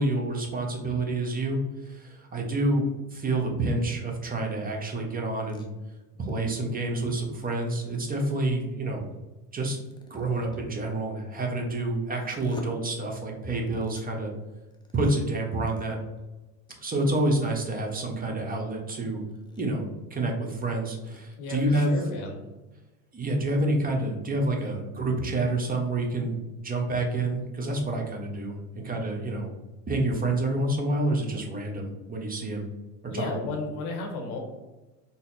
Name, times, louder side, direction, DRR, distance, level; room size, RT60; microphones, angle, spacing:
voice 1, 0.0-5.6 6.2-9.0 9.5-9.8 10.1-14.3 14.9-16.0 16.8-19.2 19.6-19.8 20.1-21.9 23.1-26.3 26.6-29.5 29.9-32.6 33.0-33.3, right 2 dB, 20° right, 1 dB, 0.9 m, -28 dB
sound 1, 5.5-5.7 7.3-8.5 9.6-10.7 12.2-12.7 13.5-14.1 14.7-15.1 15.6-15.9 16.2-16.3 16.7-16.8 17.1-17.2 17.8-18.4 18.9-19.0 19.3-19.8 20.2-20.3 20.5-20.6 20.8-21.2, left 2 dB, 10° left, 0.6 m, -48 dB
voice 2, 21.4-22.4 33.1-34.4, left 3 dB, 85° left, 2 dB, 1.1 m, -33 dB
4.1 x 2.0 x 4.0 m, 1.1 s
supercardioid pair, 90°, 43 cm